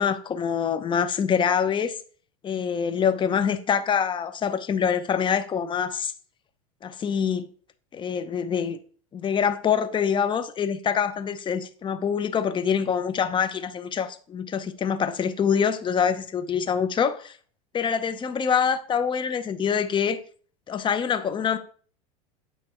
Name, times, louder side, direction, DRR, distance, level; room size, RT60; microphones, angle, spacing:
voice 1, 0.0-1.9 2.4-6.1 6.8-7.5 7.9-8.8 9.1-17.4 17.7-20.2 20.7-21.6, left 7 dB, 30° left, 0.8 m, -25 dB
8.9 x 3.4 x 4.5 m
hypercardioid pair, 100°, 18 cm